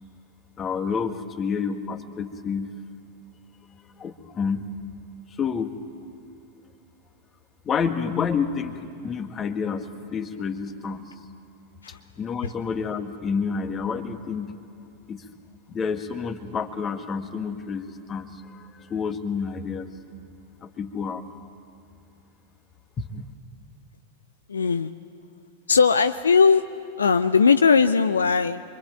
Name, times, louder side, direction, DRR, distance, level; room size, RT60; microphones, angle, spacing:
voice 1, 0.6-2.8 4.0-4.7 5.4-5.7 7.7-11.1 11.9-14.5 15.1-15.3 15.7-19.9 20.6-21.3 23.0-23.2, left 6 dB, 25° left, 8 dB, 1.6 m, -29 dB
voice 2, 24.5-24.9 25.7-26.6 27.0-28.6, left 5 dB, 70° left, 11 dB, 0.6 m, -19 dB
26.5 x 24.0 x 9.1 m, 2.6 s
figure-of-eight pair, 90°, 0 cm